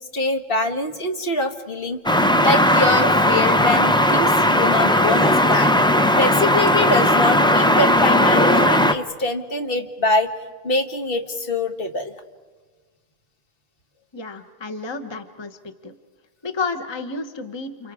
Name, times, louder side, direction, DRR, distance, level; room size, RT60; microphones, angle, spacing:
voice 1, 0.1-2.0 2.4-5.8 6.2-10.3 10.6-12.1, left 2 dB, 60° left, 5 dB, 1.7 m, -24 dB
sound 1, 2.1-8.9, left 1 dB, 5° left, 0.7 m, -17 dB
voice 2, 14.1-15.9 16.4-17.9, left 4 dB, 25° left, 7 dB, 1.1 m, -31 dB
29.5 x 28.5 x 4.9 m, 1.4 s
omnidirectional pair, 1.1 m